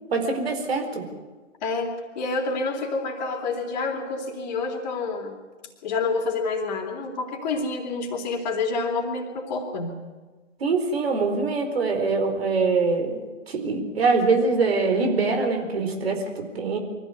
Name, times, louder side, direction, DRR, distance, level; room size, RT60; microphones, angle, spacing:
voice 1, 0.1-1.0 10.6-16.8, right 4 dB, 55° right, 5 dB, 4.5 m, -24 dB
voice 2, 1.6-5.4 5.8-10.0, left 3 dB, 35° left, 3 dB, 3.5 m, -28 dB
24.0 x 15.0 x 9.5 m, 1.3 s
figure-of-eight pair, 135°, 37 cm